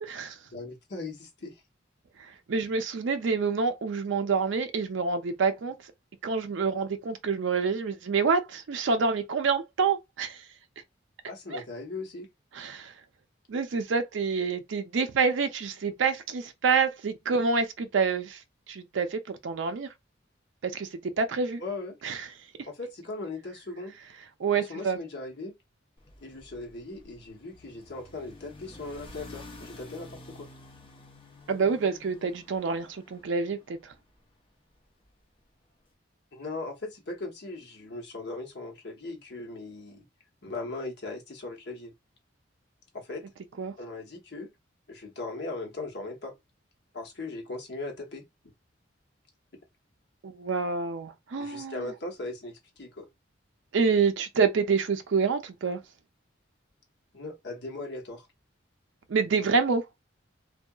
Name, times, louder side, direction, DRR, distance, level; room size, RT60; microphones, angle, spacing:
voice 1, 0.0-0.4 2.5-5.7 6.2-10.4 11.5-11.6 12.5-12.9 13.5-18.4 18.7-19.9 20.6-20.9 21.2-21.6 22.0-22.2 24.4-25.0 31.5-33.8 43.6-43.7 50.2-51.8 53.7-55.8 59.1-59.8, right 5 dB, 70° right, 0.4 m, -27 dB
voice 2, 0.5-1.6 11.3-12.3 21.6-22.0 22.7-23.9 24.5-25.5 26.2-30.5 36.3-40.0 40.4-41.9 42.9-43.2 43.8-44.5 44.9-46.3 46.9-48.2 51.4-53.1 57.1-58.3, left 2 dB, 60° left, 0.9 m, -38 dB
sound 1, 26.0-34.3, left 2 dB, 25° left, 0.7 m, -50 dB
2.7 x 2.2 x 2.2 m
head